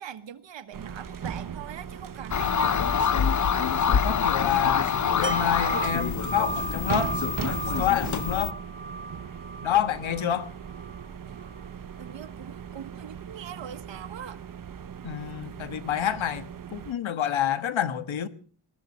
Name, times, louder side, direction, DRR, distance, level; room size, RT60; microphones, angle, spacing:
voice 1, 0.0-2.8 12.0-14.4, right 8 dB, 65° right, 1.4 m, -41 dB
sound 1, 0.7-16.9, right 8 dB, 45° right, 1.0 m, -39 dB
sound 2, 2.3-8.5, left 7 dB, 40° left, 0.7 m, -26 dB
voice 2, 4.0-7.1 7.8-8.6 9.6-10.5 15.0-18.3, left 10 dB, 75° left, 1.5 m, -28 dB
Wind chime, 5.2-11.0 11.4-11.6, right 2 dB, 25° right, 1.1 m, -35 dB
21.0 x 13.0 x 4.3 m
cardioid pair, 90°, 48 cm